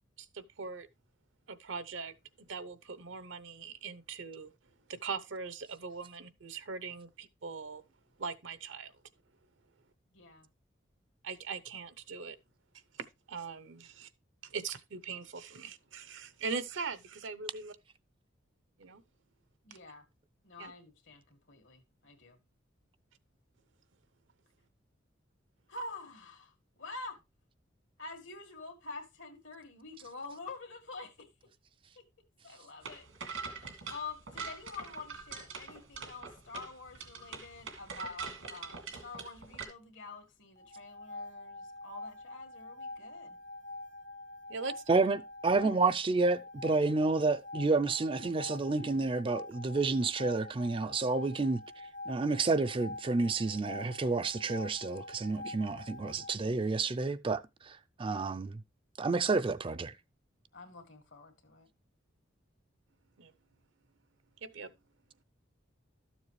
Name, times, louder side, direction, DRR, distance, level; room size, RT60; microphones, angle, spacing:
voice 1, 0.2-0.9 1.5-4.5 4.9-7.8 8.2-8.9 11.2-12.4 13.3-14.1 14.4-17.8 18.8-19.0 20.6-20.7 44.5-44.9 63.2-63.3 64.4-64.7, right 5 dB, 70° right, 0.8 m, -41 dB
voice 2, 10.1-10.5 19.6-20.1 20.4-22.4 25.7-26.5 26.8-27.2 28.0-31.5 32.0-32.1 32.4-43.4 60.5-61.7, left 3 dB, 75° left, 1.9 m, -47 dB
sound 1, 32.8-39.6, right 5 dB, 90° right, 2.3 m, -43 dB
sound 2, 40.6-56.4, left 2 dB, 45° left, 0.9 m, -46 dB
voice 3, 45.4-51.6 52.1-58.6 59.0-59.9, right 3 dB, 25° right, 0.4 m, -30 dB
12.5 x 7.2 x 3.2 m
head